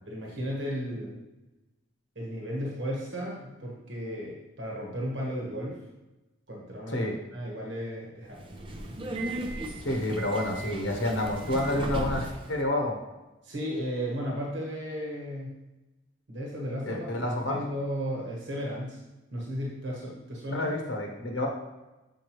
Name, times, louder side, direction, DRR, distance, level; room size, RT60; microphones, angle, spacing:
voice 1, 0.1-1.2 2.1-5.8 6.5-8.6 13.4-15.6 16.3-17.1 17.5-19.0 19.3-20.7, equal, 65° right, -3 dB, 1.2 m, -34 dB
Subway metro underground, 8.3-12.5, right 1 dB, 25° right, 0.5 m, -36 dB
voice 2, 9.8-13.0 16.8-17.6 20.5-21.5, left 1 dB, 70° left, 1 dB, 1.0 m, -29 dB
7.3 x 4.7 x 3.0 m, 1.0 s
head